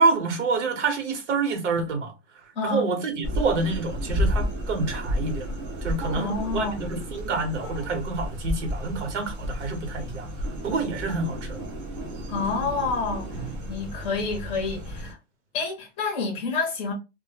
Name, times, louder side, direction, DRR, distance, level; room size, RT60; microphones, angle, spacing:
voice 1, 0.0-2.1 2.6-5.5 5.8-10.3 10.6-11.7, right 4 dB, 75° right, 1.0 m, -27 dB
sound 1, 3.2-15.1, equal, 30° right, 0.4 m, -32 dB
voice 2, 6.1-6.9 12.3-13.4 13.7-15.2 15.5-16.9, left 4 dB, 15° left, 0.6 m, -28 dB
2.1 x 2.1 x 3.0 m
supercardioid pair, 165°, 36 cm